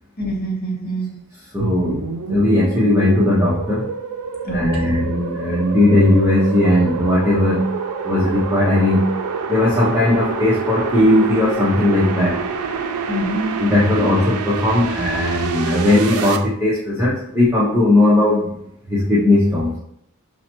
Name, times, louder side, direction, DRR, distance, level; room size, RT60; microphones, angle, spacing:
voice 1, 0.2-1.1 4.4-5.0 13.1-14.2, right 1 dB, 45° left, -2 dB, 1.1 m, -26 dB
voice 2, 1.5-3.9 4.5-7.7 8.0-9.0 9.5-12.4 13.6-18.5 18.9-19.8, left 1 dB, 10° right, -8 dB, 0.6 m, -17 dB
sound 1, 1.6-16.4, right 5 dB, 80° right, 0.4 m, -27 dB
5.3 x 2.1 x 2.9 m, 0.73 s
head